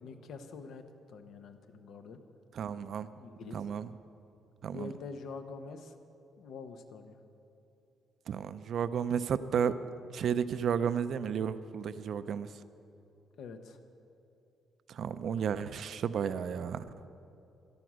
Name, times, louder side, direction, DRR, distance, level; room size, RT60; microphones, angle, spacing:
voice 1, 0.0-0.8 1.1-2.2 3.2-3.6 4.7-5.9 6.4-7.1 13.4-13.8, left 4 dB, 75° left, 8 dB, 0.9 m, -45 dB
voice 2, 2.5-3.1 3.5-3.9 4.6-4.9 8.3-9.8 10.1-12.5 14.9-16.8, right 7 dB, 65° right, 12 dB, 0.5 m, -32 dB
12.0 x 12.0 x 6.3 m, 2.7 s
cardioid pair, 90°, 0 cm